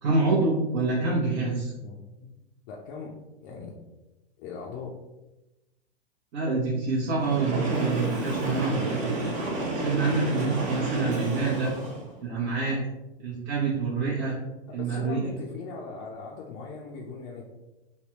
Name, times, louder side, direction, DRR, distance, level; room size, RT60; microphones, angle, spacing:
voice 1, 0.0-1.7 6.3-9.1 9.7-11.7 12.2-12.8 13.2-14.3 14.7-15.2, right 3 dB, 50° right, -7 dB, 0.9 m, -26 dB
voice 2, 1.8-2.3 2.7-3.2 3.4-3.7 4.4-5.0 14.7-17.4, left 4 dB, 40° left, -2 dB, 0.5 m, -39 dB
Train, 7.1-12.2, right 2 dB, 25° right, 0.6 m, -30 dB
3.3 x 2.2 x 2.9 m, 1.0 s
hypercardioid pair, 120°, 31 cm